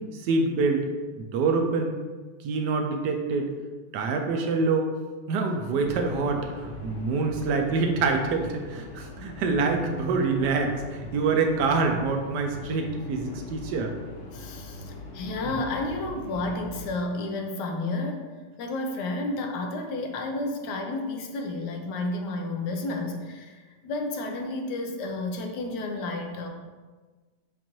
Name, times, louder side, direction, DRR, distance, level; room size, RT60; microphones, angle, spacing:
voice 1, 0.1-0.9 1.2-2.0 2.4-3.5 3.9-4.9 5.3-13.9 15.4-15.5, right 4 dB, 75° right, 4 dB, 1.1 m, -26 dB
sound 1, 5.8-16.9, left 1 dB, 55° left, 0.9 m, -42 dB
voice 2, 14.3-18.3 18.6-26.5, left 2 dB, 75° left, 3 dB, 1.2 m, -31 dB
7.0 x 2.5 x 3.0 m, 1.3 s
omnidirectional pair, 1.9 m